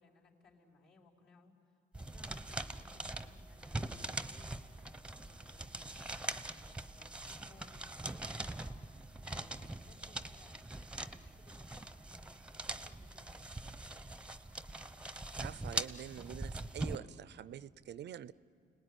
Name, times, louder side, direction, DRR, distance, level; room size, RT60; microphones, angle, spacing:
voice 1, 0.0-14.1, left 3 dB, 65° left, -4 dB, 5.2 m, -65 dB
sound 1, 1.9-17.0, right 2 dB, 5° right, 0.9 m, -42 dB
voice 2, 15.4-18.3, right 10 dB, 60° right, 18 dB, 0.6 m, -46 dB
29.5 x 19.0 x 10.0 m, 2.5 s
cardioid pair, 90°, 20 cm